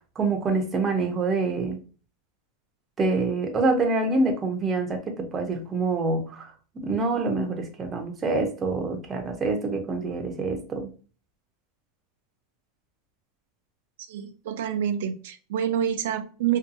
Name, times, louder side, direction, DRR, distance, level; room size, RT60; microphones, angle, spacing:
voice 1, 0.2-1.8 3.0-10.9, right 3 dB, 20° right, 0.5 m, -26 dB
voice 2, 14.1-16.6, right 9 dB, 75° right, 0.3 m, -27 dB
2.6 x 2.3 x 2.5 m
supercardioid pair, 160°, 0 cm